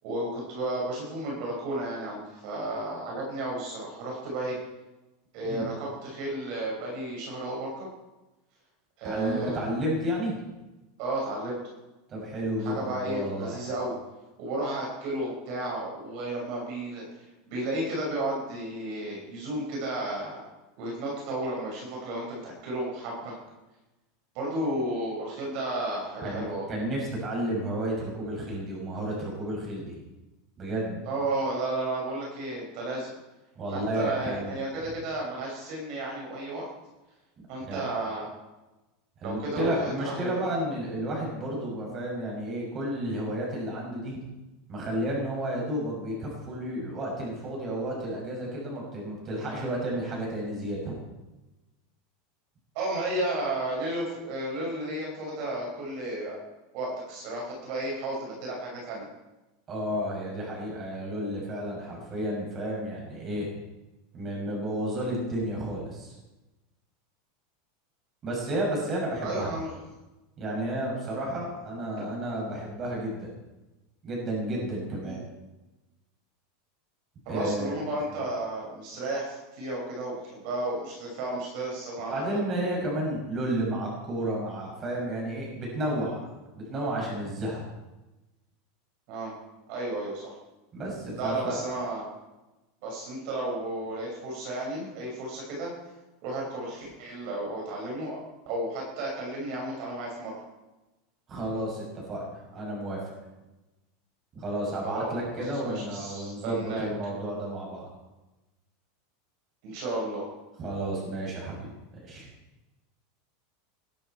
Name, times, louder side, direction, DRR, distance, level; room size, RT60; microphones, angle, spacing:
voice 1, 0.0-4.6 5.3-7.9 9.0-9.7 11.0-11.6 12.6-13.9 14.4-20.5 20.8-23.3 24.3-26.7 31.1-33.1 33.7-36.7 37.5-38.3 39.2-40.4 52.7-56.4 56.7-59.0 69.2-69.7 75.0-75.2 77.3-82.4 89.1-89.3 89.7-90.4 91.2-92.0 92.8-95.7 96.2-98.2 98.4-100.3 104.8-106.9 109.6-110.2, right 1 dB, 50° right, -2 dB, 6.0 m, -33 dB
voice 2, 9.0-10.3 12.1-13.6 26.2-30.0 30.6-31.0 33.6-34.9 37.7-37.8 39.2-44.2 44.7-51.0 59.7-63.5 64.1-66.1 68.2-69.6 70.4-73.3 74.0-75.2 77.3-77.9 82.1-87.6 90.7-91.6 101.3-103.0 104.3-107.9 110.6-112.3, right 1 dB, 25° right, -2 dB, 7.3 m, -32 dB
21.0 x 12.0 x 4.7 m, 1.1 s
supercardioid pair, 160°, 0 cm